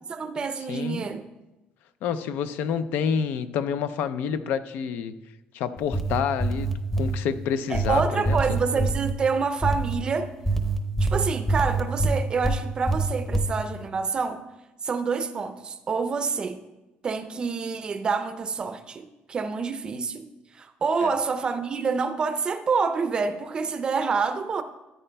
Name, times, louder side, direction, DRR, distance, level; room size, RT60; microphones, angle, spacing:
voice 1, 0.1-1.2 7.7-10.3 11.0-14.4 14.8-16.6 17.0-20.3 20.5-24.6, right 5 dB, 30° right, 10 dB, 0.5 m, -27 dB
voice 2, 0.7-1.0 2.0-5.1 5.5-8.6 21.0-21.1, left 7 dB, 75° left, 12 dB, 0.5 m, -28 dB
sound 1, 5.8-7.2 7.7-9.1 9.6-10.0 10.5-12.6 12.9-13.5, right 3 dB, 10° left, 0.7 m, -25 dB
14.0 x 9.0 x 2.2 m, 1.0 s
cardioid pair, 160°, 3 cm